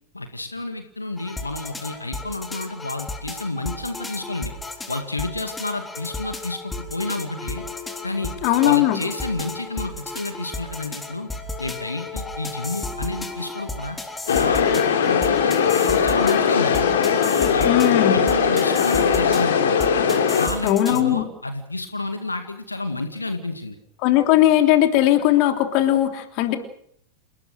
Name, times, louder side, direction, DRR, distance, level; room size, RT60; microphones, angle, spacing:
voice 1, 0.1-4.5 4.9-7.6 8.0-8.3 8.6-11.3 11.6-14.0 14.3-16.9 17.5-19.8 20.4-23.8, left 2 dB, 80° left, 8 dB, 2.0 m, -30 dB
sound 1, 1.2-21.0, left 2 dB, 10° left, 3.6 m, -34 dB
voice 2, 8.4-9.0 17.6-18.2 20.6-21.2 24.0-26.6, left 13 dB, 45° left, 6 dB, 3.3 m, -18 dB
sound 2, 14.3-20.5, left 7 dB, 60° left, 3.3 m, -19 dB
28.5 x 19.0 x 6.5 m, 0.69 s
figure-of-eight pair, 90°, 0 cm